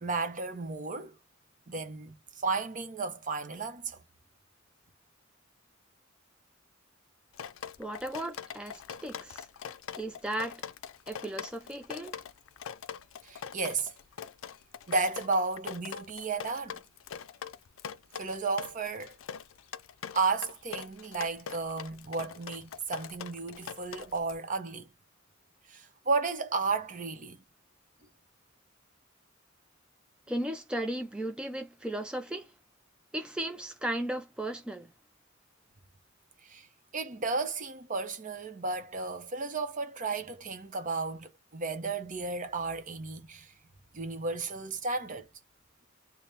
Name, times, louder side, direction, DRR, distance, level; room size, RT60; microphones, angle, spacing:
voice 1, 0.0-1.2 1.7-4.0 13.2-13.9 14.9-16.8 18.2-19.1 20.1-24.9 25.7-27.4 36.5-36.7 36.9-43.5 43.9-45.3, right 4 dB, 40° right, 0.7 m, -33 dB
Drip, 7.3-24.3, left 8 dB, 75° left, 0.4 m, -43 dB
voice 2, 7.8-9.5 10.0-10.6 11.1-12.2 30.3-32.5 33.1-34.9, right 1 dB, 5° right, 0.3 m, -36 dB
3.3 x 2.1 x 3.9 m
head